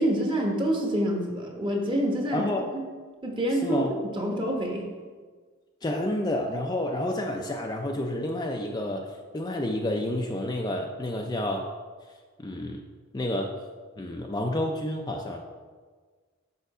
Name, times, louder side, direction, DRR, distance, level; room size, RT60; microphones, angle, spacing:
voice 1, 0.0-2.4 2.7-2.8 3.2-4.9, right 1 dB, 25° right, 1 dB, 1.1 m, -27 dB
voice 2, 2.3-2.7 3.6-3.9 5.8-11.7 12.4-12.8 13.1-13.5 14.0-15.4, left 1 dB, 20° left, 1 dB, 0.4 m, -29 dB
6.8 x 5.8 x 4.8 m, 1.5 s
head